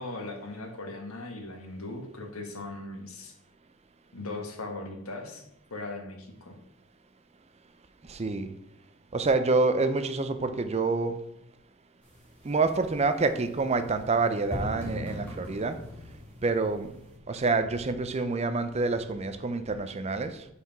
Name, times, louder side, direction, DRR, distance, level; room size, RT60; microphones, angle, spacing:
voice 1, 0.0-3.3 4.1-5.4 5.7-6.5, left 2 dB, 85° left, 3 dB, 1.4 m, -39 dB
voice 2, 8.1-8.5 9.1-11.2 12.4-15.8 16.4-16.9 17.3-20.5, right 3 dB, 30° right, 10 dB, 0.5 m, -27 dB
sound 1, 12.0-17.2, left 1 dB, 5° left, 2.0 m, -41 dB
5.7 x 4.8 x 5.9 m, 0.82 s
head